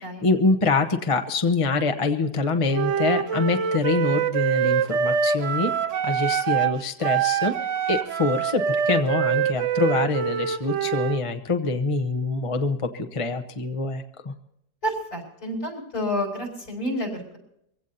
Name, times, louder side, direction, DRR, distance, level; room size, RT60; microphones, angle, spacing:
voice 1, 0.2-5.7 6.0-7.6 7.9-14.3, left 3 dB, 25° left, 7 dB, 0.8 m, -25 dB
Wind instrument woodwind instrument, 2.7-6.8 7.0-11.2, right 8 dB, 60° right, 1.0 m, -25 dB
voice 2, 14.8-17.4, equal, 65° left, 2 dB, 5.4 m, -29 dB
23.5 x 16.5 x 2.7 m, 0.78 s
omnidirectional pair, 1.7 m